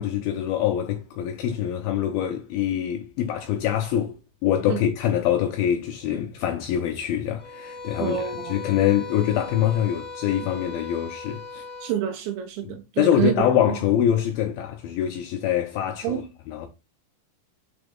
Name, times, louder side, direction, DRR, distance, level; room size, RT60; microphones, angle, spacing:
voice 1, 0.0-4.2 4.4-11.6 12.6-16.2 16.5-16.7, left 10 dB, 85° left, 2.1 m, -24 dB
sound 1, 7.4-12.0, left 3 dB, 20° left, 0.8 m, -38 dB
voice 2, 8.0-8.6 11.8-13.8 16.0-16.3, right 11 dB, 85° right, 3.0 m, -28 dB
7.0 x 3.9 x 3.6 m
omnidirectional pair, 5.1 m